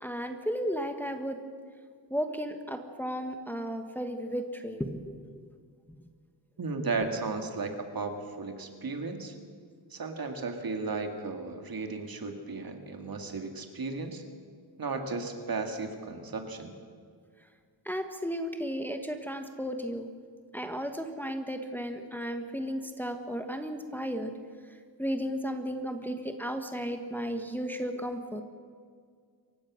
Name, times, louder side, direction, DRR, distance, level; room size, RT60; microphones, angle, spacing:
voice 1, 0.0-1.4 2.1-5.4 17.8-20.1 20.5-24.3 25.0-28.4, equal, 5° left, 5 dB, 1.2 m, -34 dB
voice 2, 6.6-9.3 9.9-14.2 14.8-16.7, right 3 dB, 50° right, 5 dB, 2.4 m, -35 dB
27.5 x 16.0 x 6.4 m, 2.1 s
wide cardioid pair, 140°, 45 cm